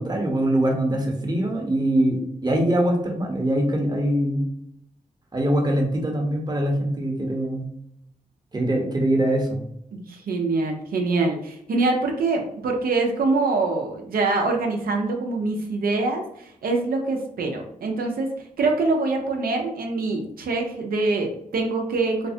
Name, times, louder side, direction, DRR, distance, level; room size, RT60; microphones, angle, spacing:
voice 1, 0.0-4.5 5.3-7.7 8.5-9.6, right 1 dB, 25° right, 1 dB, 0.9 m, -23 dB
voice 2, 9.9-16.2 16.6-18.3 18.6-22.3, right 3 dB, 75° right, 2 dB, 0.6 m, -24 dB
3.2 x 2.1 x 2.7 m, 0.75 s
cardioid pair, 50°, 15 cm